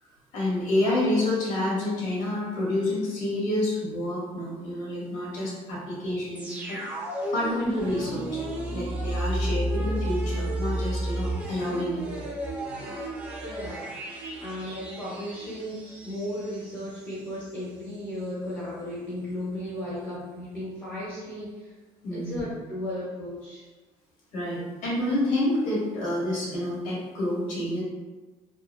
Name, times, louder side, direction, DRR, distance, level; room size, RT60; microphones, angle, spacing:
voice 1, 0.3-6.8 7.3-8.4 8.7-12.0 22.0-22.4 24.3-27.8, left 1 dB, 75° left, -5 dB, 1.0 m, -28 dB
sound 1, 6.4-17.2 17.5-17.6, right 1 dB, 10° right, 0.4 m, -32 dB
voice 2, 13.4-13.9 14.4-21.7 22.1-23.7, left 1 dB, 25° left, -9 dB, 0.7 m, -35 dB
2.5 x 2.1 x 2.2 m, 1.3 s
cardioid pair, 170°, 13 cm